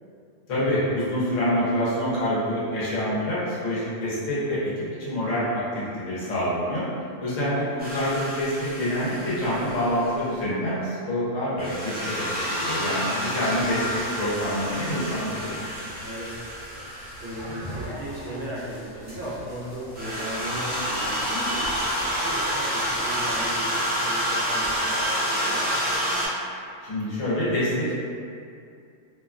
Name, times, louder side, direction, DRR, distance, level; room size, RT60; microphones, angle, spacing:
voice 1, 0.5-6.8 7.2-15.6 26.8-27.9, equal, 75° left, -9 dB, 1.2 m, -26 dB
sound 1, 7.8-10.3 11.6-17.7 19.1-19.2 19.9-26.3, equal, 15° right, 0.3 m, -29 dB
voice 2, 12.6-13.6 16.0-16.5 16.9-25.9, equal, 60° right, -7 dB, 0.7 m, -37 dB
sound 2, 13.5-23.5, equal, 45° left, 1.1 m, -42 dB
2.7 x 2.1 x 2.4 m, 2.5 s
omnidirectional pair, 1.3 m